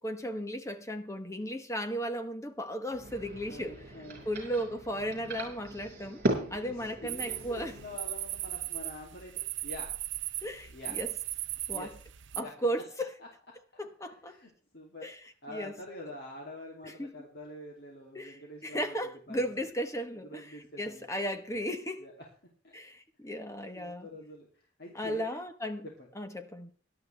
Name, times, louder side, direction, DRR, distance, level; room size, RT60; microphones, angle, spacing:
voice 1, 0.0-3.8 4.2-6.2 6.5-7.7 10.4-11.1 11.7-11.9 12.4-13.1 13.8-14.4 15.0-15.7 16.8-17.3 18.1-22.0 22.7-24.1 24.9-25.9 26.1-26.7, equal, 15° left, 1.1 m, -35 dB
sound 1, 2.9-8.0, right 1 dB, 45° right, 5.3 m, -37 dB
voice 2, 3.5-4.3 6.4-9.9 10.7-10.9 11.7-11.9 12.3-12.5 13.2-13.3 13.7-15.1 15.4-18.9 19.3-19.4 20.2-21.1 22.0-22.1 22.6-22.8 23.7-25.4 25.8-26.1, left 1 dB, 50° left, 2.7 m, -46 dB
sound 2, 7.1-12.4, right 16 dB, 65° right, 0.6 m, -38 dB
17.5 x 12.0 x 3.3 m
head